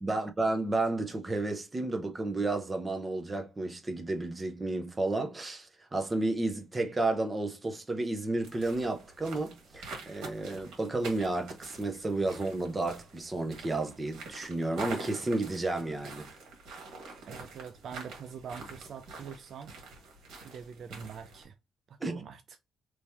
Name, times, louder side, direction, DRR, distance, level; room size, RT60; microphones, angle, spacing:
voice 1, 0.0-16.3 22.0-22.2, right 2 dB, 20° right, 0.8 m, -32 dB
sound 1, 8.4-21.4, right 3 dB, 85° right, 1.5 m, -46 dB
voice 2, 17.2-19.7 20.4-21.6 21.9-22.4, right 7 dB, 60° right, 0.4 m, -44 dB
3.1 x 2.8 x 3.4 m
cardioid pair, 105°, 0 cm